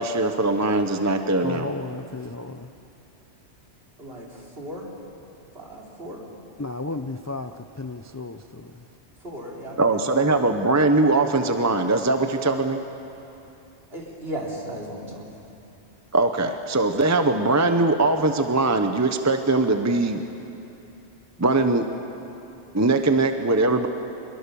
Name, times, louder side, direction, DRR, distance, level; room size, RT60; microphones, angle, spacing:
voice 1, 0.0-1.7 9.8-12.8 16.1-20.2 21.4-21.9 22.7-23.9, right 2 dB, 15° right, 7 dB, 0.8 m, -21 dB
voice 2, 1.4-2.7 6.6-8.7, left 3 dB, 25° left, 8 dB, 0.4 m, -33 dB
voice 3, 4.6-4.9 5.5-6.2 9.2-9.8 10.2-10.3 13.9-15.4, right 1 dB, 60° right, -2 dB, 3.9 m, -35 dB
25.0 x 22.0 x 7.0 m, 2.8 s
omnidirectional pair, 1.2 m